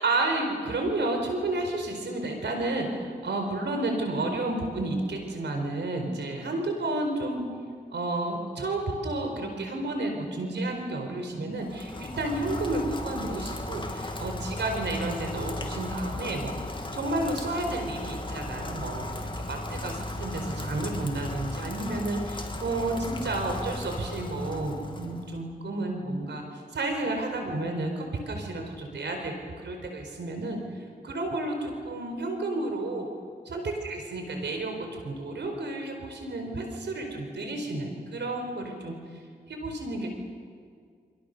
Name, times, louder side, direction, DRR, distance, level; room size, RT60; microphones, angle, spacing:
voice 1, 0.0-7.5 7.9-16.5 16.9-30.6 31.0-33.1 33.4-39.0 39.5-40.1, right 2 dB, 80° right, 4 dB, 4.7 m, -31 dB
Rain, 11.6-25.4, left 1 dB, 25° left, 2.8 m, -36 dB
26.5 x 24.5 x 6.9 m, 2.1 s
cardioid pair, 55°, 18 cm